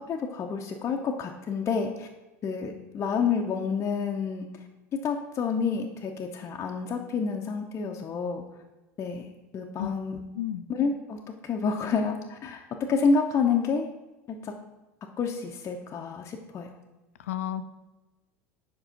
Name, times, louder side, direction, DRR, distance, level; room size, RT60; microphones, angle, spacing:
voice 1, 0.1-2.1 2.4-4.5 4.9-8.4 9.0-9.3 9.5-10.2 10.7-12.6 12.9-13.9 14.3-14.5 15.2-16.7, left 5 dB, 35° left, 1 dB, 0.7 m, -29 dB
voice 2, 17.2-17.6, left 11 dB, 85° left, 11 dB, 0.5 m, -31 dB
5.3 x 4.9 x 5.1 m, 1.1 s
hypercardioid pair, 90°, 8 cm